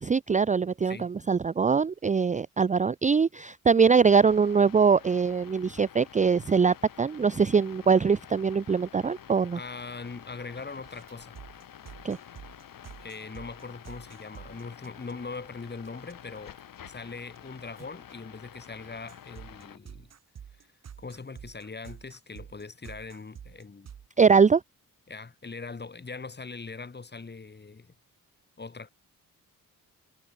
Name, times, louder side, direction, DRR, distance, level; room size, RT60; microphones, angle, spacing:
voice 1, 0.0-9.6 12.0-12.2 24.2-24.6, right 5 dB, 20° right, 0.5 m, -22 dB
sound 1, 3.8-19.8, left 9 dB, 75° left, 4.4 m, -49 dB
voice 2, 9.5-11.4 13.0-16.6 16.9-20.1 20.6-20.7 21.0-23.9 25.1-27.9 28.6-28.9, left 4 dB, 30° left, 7.9 m, -41 dB
sound 2, 10.8-15.4 15.9-16.1 16.6-17.0 17.4-17.5 17.8-18.1 18.8-24.1, right 8 dB, 50° right, 1.3 m, -48 dB
cardioid pair, 115°, 34 cm